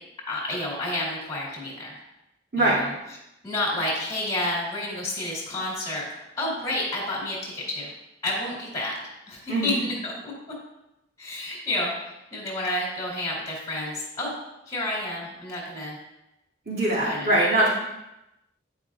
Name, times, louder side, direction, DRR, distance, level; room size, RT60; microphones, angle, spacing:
voice 1, 0.3-2.0 2.6-2.9 3.4-7.9 8.2-8.9 9.3-10.3 11.2-11.9 12.3-14.3 14.7-16.0 17.1-17.3, left 1 dB, 20° left, -7 dB, 2.2 m, -30 dB
voice 2, 16.7-17.7, right 1 dB, 55° right, -7 dB, 2.6 m, -22 dB
10.0 x 4.8 x 2.4 m, 0.89 s
head